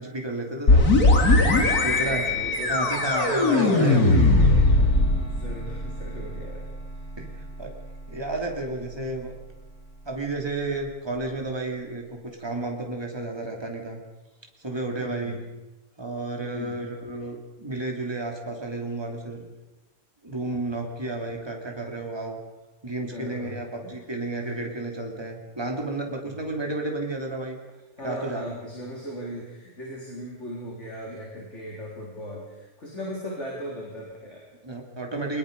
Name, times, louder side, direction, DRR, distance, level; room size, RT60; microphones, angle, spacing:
voice 1, 0.0-1.4 1.8-2.3 2.7-4.0 7.2-7.7 8.1-9.3 10.0-14.0 14.6-15.4 16.0-19.5 20.2-22.4 22.8-27.6 28.0-28.6 34.6-35.4, right 2 dB, 15° right, 1 dB, 2.9 m, -32 dB
sound 1, 0.7-10.2, left 2 dB, 75° left, 2.9 m, -22 dB
voice 2, 2.1-2.8 3.2-6.6 15.0-15.4 16.4-16.8 23.1-24.0 24.3-24.5 28.0-34.5, equal, 50° left, -3 dB, 4.2 m, -38 dB
23.5 x 21.0 x 5.3 m, 1.1 s
omnidirectional pair, 1.6 m